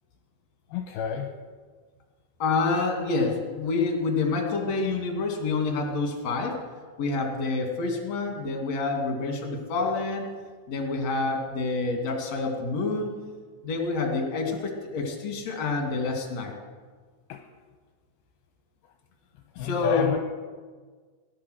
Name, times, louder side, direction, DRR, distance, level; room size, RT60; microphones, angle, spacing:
voice 1, 0.7-1.3 17.3-17.4 19.6-20.2, left 9 dB, 75° left, 4 dB, 2.6 m, -29 dB
voice 2, 2.4-6.6 7.0-10.2 10.7-13.1 13.6-16.5 19.6-20.1, left 3 dB, 50° left, 2 dB, 3.3 m, -27 dB
18.5 x 11.0 x 6.4 m, 1.5 s
omnidirectional pair, 4.5 m